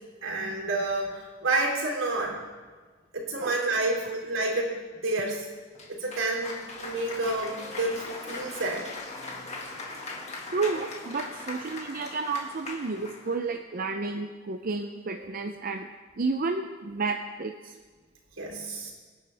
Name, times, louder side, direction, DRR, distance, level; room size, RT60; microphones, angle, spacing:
voice 1, 0.2-2.4 3.1-5.4 5.9-8.9 18.4-18.9, right 2 dB, 80° right, -1 dB, 3.5 m, -29 dB
Cheering / Applause, 5.7-13.4, left 3 dB, 35° left, 1.9 m, -40 dB
voice 2, 10.5-15.9 16.2-17.7, right 4 dB, 45° right, 5 dB, 0.6 m, -31 dB
24.0 x 9.9 x 3.5 m, 1.5 s
head